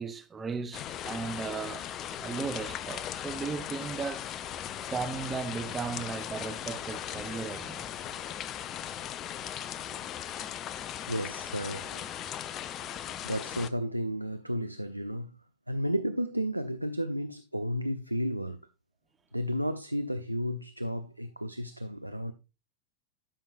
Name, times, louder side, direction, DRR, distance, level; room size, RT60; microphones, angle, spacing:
voice 1, 0.0-4.3 4.9-7.8, right 5 dB, 15° right, 0.8 m, -36 dB
sound 1, 0.7-13.7, left 10 dB, 30° left, 0.4 m, -38 dB
voice 2, 11.1-12.1 12.5-12.6 13.2-15.3 15.7-18.6 19.3-22.3, equal, 90° right, 0.4 m, -33 dB
12.0 x 5.3 x 2.5 m
figure-of-eight pair, 90°, 0 cm